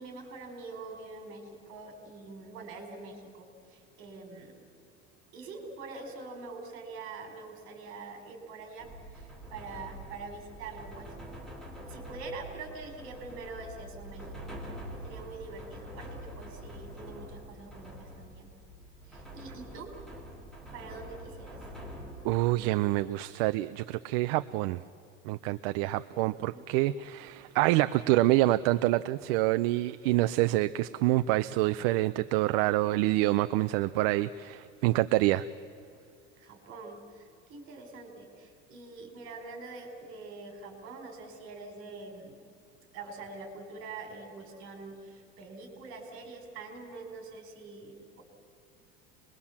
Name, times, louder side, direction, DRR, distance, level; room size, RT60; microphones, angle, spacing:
voice 1, 0.0-4.5 5.3-11.2 11.8-14.4 15.0-18.5 19.0-19.9 20.7-21.6 26.1-26.6 36.4-42.4 42.9-48.2, right 3 dB, 45° right, 4 dB, 4.4 m, -45 dB
sound 1, 8.8-22.4, equal, ahead, 2.8 m, -45 dB
voice 2, 22.2-24.8 25.2-35.5, right 17 dB, 70° right, 12 dB, 0.6 m, -27 dB
25.5 x 21.5 x 7.2 m, 2.4 s
cardioid pair, 170°, 30 cm